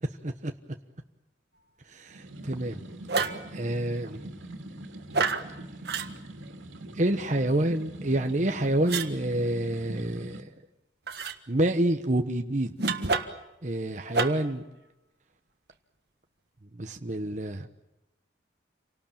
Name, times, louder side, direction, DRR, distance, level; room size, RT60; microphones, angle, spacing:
voice 1, 1.9-2.8 3.5-4.3 6.9-10.5 11.5-12.9 13.6-14.6 16.8-17.7, right 1 dB, 40° right, 5 dB, 1.1 m, -28 dB
sound 1, 2.1-10.4, right 1 dB, 85° right, 2.6 m, -43 dB
sound 2, 3.1-3.5 5.1-5.5 5.9-6.1 8.9-9.1 11.1-11.4 12.8-13.5 14.1-14.5, right 4 dB, 55° right, 1.5 m, -28 dB
28.5 x 18.5 x 8.9 m, 0.93 s
head